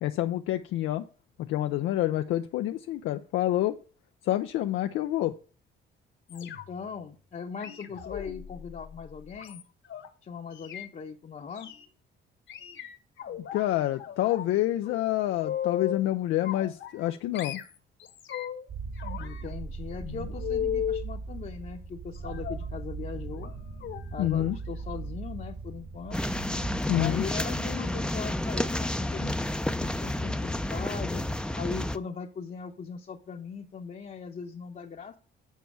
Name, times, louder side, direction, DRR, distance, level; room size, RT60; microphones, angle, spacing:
voice 1, 0.0-1.1 1.4-3.8 4.2-5.4 13.4-17.6 24.2-24.6 26.9-27.2, left 14 dB, 90° left, 7 dB, 0.5 m, -27 dB
sound 1, 6.3-6.9 7.6-10.1 10.5-10.9 11.6-11.9 12.5-13.6 14.0-14.5 14.8-16.1 16.4-17.1 17.3-18.7 19.0-21.1 22.2-22.7 23.4-23.5 23.8-24.0 24.3-24.5 24.8-24.9, left 9 dB, 70° left, 1.3 m, -37 dB
voice 2, 6.3-9.6 10.2-11.7 19.2-23.5 24.1-26.2 26.9-29.5 29.8-31.3 31.6-35.2, left 6 dB, 40° left, 1 dB, 0.8 m, -39 dB
sound 2, 18.7-26.8, right 4 dB, 75° right, 3.4 m, -39 dB
sound 3, 26.1-32.0, left 1 dB, 5° left, 0.5 m, -30 dB
7.4 x 4.5 x 7.0 m, 0.37 s
cardioid pair, 90°, 20 cm